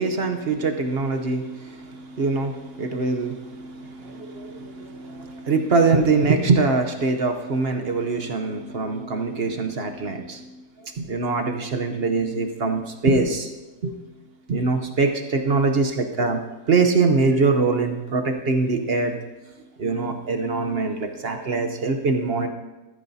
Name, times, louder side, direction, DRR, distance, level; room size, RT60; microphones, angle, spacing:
voice 1, 0.0-10.4 10.8-13.5 13.8-14.0 14.5-16.4 16.7-19.1 19.8-22.5, right 4 dB, 55° right, 5 dB, 0.7 m, -23 dB
14.0 x 13.5 x 2.7 m, 1.1 s
omnidirectional pair, 2.0 m